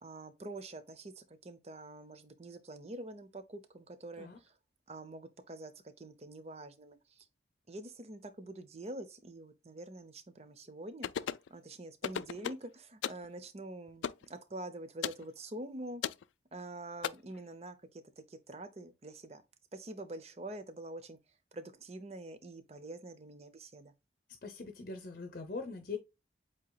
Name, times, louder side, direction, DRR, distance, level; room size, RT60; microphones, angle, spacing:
voice 1, 0.0-4.5 4.9-7.3 7.7-11.1 11.5-16.0 16.5-19.4 19.7-21.2 21.5-23.9, right 2 dB, 35° right, 0.6 m, -46 dB
sound 1, 11.0-11.5 12.0-12.7 13.0-13.3 14.0-14.2 15.0-15.2 16.0-16.2 17.0-17.1, left 8 dB, 85° left, 0.3 m, -35 dB
voice 2, 24.4-26.0, left 4 dB, 50° left, 0.7 m, -41 dB
7.9 x 2.9 x 2.2 m
head